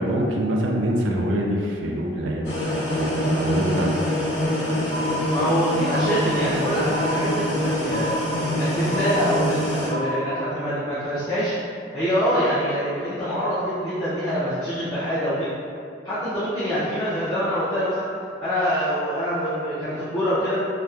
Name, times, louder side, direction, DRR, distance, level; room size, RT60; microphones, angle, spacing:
voice 1, 0.0-2.5 3.0-4.0, right 1 dB, 85° right, -1 dB, 0.4 m, -25 dB
sound 1, 2.4-9.9, left 1 dB, 65° left, 0.6 m, -25 dB
sound 2, 4.9-5.6 5.9-6.6 6.9-7.6 7.9-8.6 8.9-9.6 9.9-10.4, equal, 50° left, 1.1 m, -32 dB
voice 2, 5.3-8.2 8.5-11.5 11.9-15.5 16.0-18.1 18.4-20.6, equal, 20° left, -14 dB, 0.5 m, -25 dB
2.8 x 2.0 x 2.3 m, 2.4 s
head